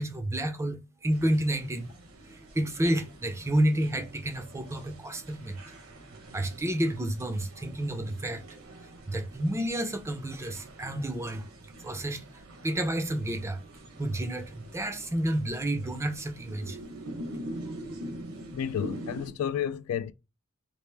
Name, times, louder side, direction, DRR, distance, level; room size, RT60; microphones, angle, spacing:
voice 1, 0.0-2.0 2.2-5.6 6.3-8.6 9.1-11.5 11.8-13.6 14.0-16.8, right 1 dB, 15° right, 0.4 m, -30 dB
sound 1, 1.1-19.3, right 1 dB, 75° right, 1.0 m, -45 dB
voice 2, 18.5-20.1, left 8 dB, 80° left, 0.3 m, -31 dB
3.3 x 2.5 x 3.2 m
head